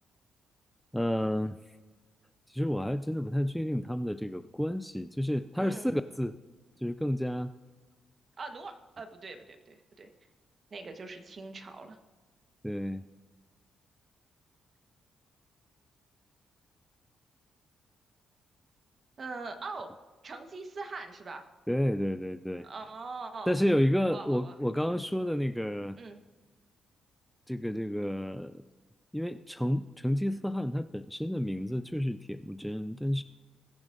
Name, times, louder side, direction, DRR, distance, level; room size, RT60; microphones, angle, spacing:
voice 1, 0.9-1.6 2.5-6.4 6.8-7.5 12.6-13.0 21.7-22.7 23.5-26.0 27.5-28.6 29.1-33.2, equal, ahead, 10 dB, 0.3 m, -30 dB
voice 2, 5.6-6.0 8.4-10.1 10.7-12.0 19.2-19.9 20.2-21.4 22.6-23.6 24.1-24.5 26.0-26.2, right 3 dB, 45° right, 6 dB, 1.2 m, -42 dB
21.0 x 7.1 x 2.6 m, 1.3 s
cardioid pair, 85°, 0 cm